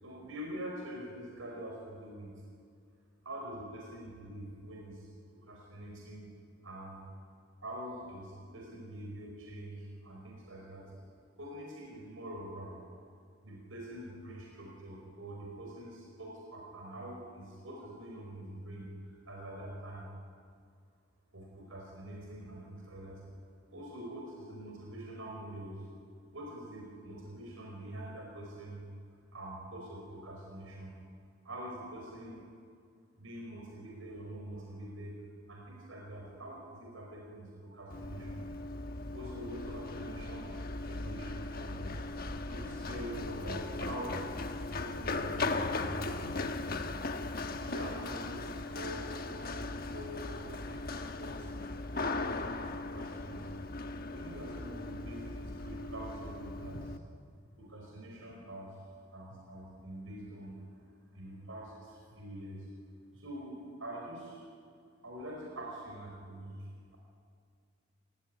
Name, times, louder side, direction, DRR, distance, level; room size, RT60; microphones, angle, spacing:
voice 1, 0.0-2.4 3.2-6.3 6.6-7.1 7.6-10.9 11.4-12.9 13.4-20.2 21.3-23.2 23.7-25.9 26.3-28.8 29.3-31.0 31.4-32.4 33.2-35.2 35.5-38.5 39.1-40.5 40.9-42.1 42.5-44.2 44.6-46.5 47.5-51.5 51.9-53.5 54.1-57.0 57.6-58.8 59.1-60.6 61.1-62.7 63.1-64.4 65.0-67.0, right 1 dB, 75° right, -2 dB, 5.0 m, -45 dB
Run, 37.9-57.0, left 2 dB, 45° left, 1.2 m, -38 dB
29.0 x 16.5 x 9.7 m, 2.2 s
head